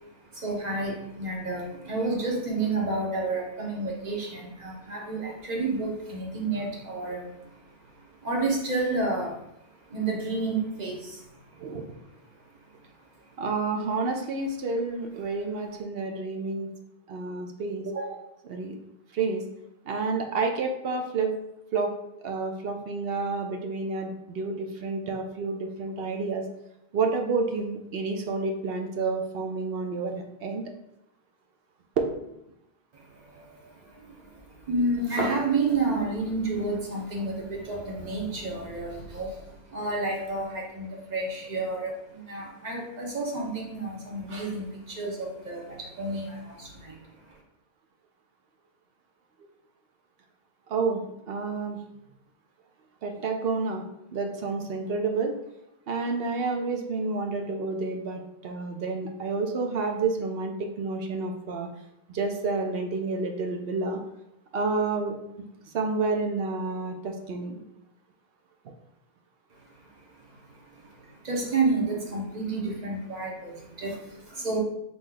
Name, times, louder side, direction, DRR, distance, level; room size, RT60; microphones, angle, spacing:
voice 1, 0.3-7.4 8.2-9.4 9.9-11.2 33.1-34.4 34.7-47.0 71.2-74.6, right 3 dB, 40° right, -1 dB, 1.0 m, -30 dB
voice 2, 13.4-16.7 17.1-18.2 18.5-18.8 19.1-19.4 19.9-21.3 21.7-22.0 22.2-26.4 26.9-30.6 32.0-32.1 50.7-51.0 51.3-51.8 53.0-53.8 54.1-55.3 55.9-61.7 62.1-64.0 64.5-65.1 65.7-67.6, right 4 dB, 60° right, 4 dB, 0.8 m, -29 dB
4.0 x 3.1 x 3.8 m, 0.84 s
omnidirectional pair, 1.2 m